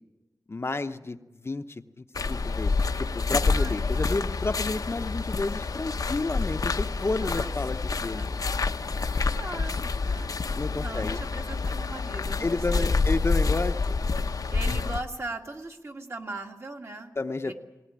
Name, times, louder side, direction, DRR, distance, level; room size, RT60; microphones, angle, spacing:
voice 1, 0.5-8.3 10.5-11.2 12.4-14.0 17.2-17.5, left 3 dB, 40° left, 8 dB, 0.8 m, -31 dB
sound 1, 2.1-15.0, left 4 dB, 70° left, 0.8 m, -28 dB
voice 2, 3.4-4.5 7.0-7.5 8.1-8.3 9.3-10.4 10.8-13.1 14.5-17.1 17.4-17.5, right 2 dB, 40° right, 3 dB, 2.1 m, -39 dB
20.0 x 18.5 x 10.0 m, 1.1 s
wide cardioid pair, 90°, 7 cm